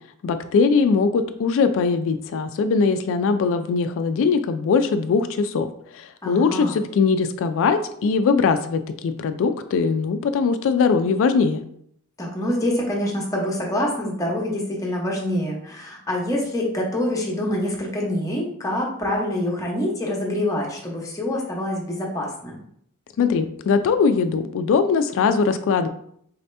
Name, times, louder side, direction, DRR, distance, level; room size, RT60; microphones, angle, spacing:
voice 1, 0.2-5.7 5.9-11.6 23.2-25.9, left 5 dB, 60° left, 9 dB, 0.3 m, -21 dB
voice 2, 6.2-6.8 12.2-22.6, left 1 dB, 15° left, -2 dB, 0.9 m, -26 dB
4.1 x 2.8 x 3.2 m, 0.68 s
head